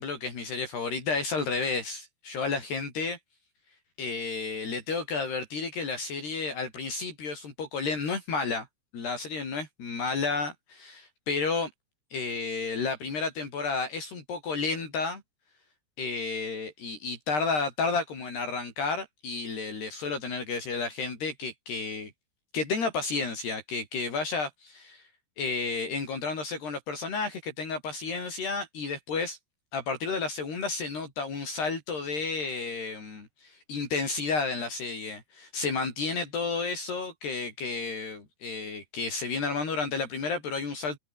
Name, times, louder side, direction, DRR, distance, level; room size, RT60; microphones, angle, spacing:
voice 1, 0.0-3.2 4.0-8.7 8.9-11.7 12.1-15.2 16.0-22.1 22.5-25.0 25.4-29.4 29.7-41.0, left 4 dB, 60° left, 7.6 m, -31 dB
omnidirectional pair, 5.4 m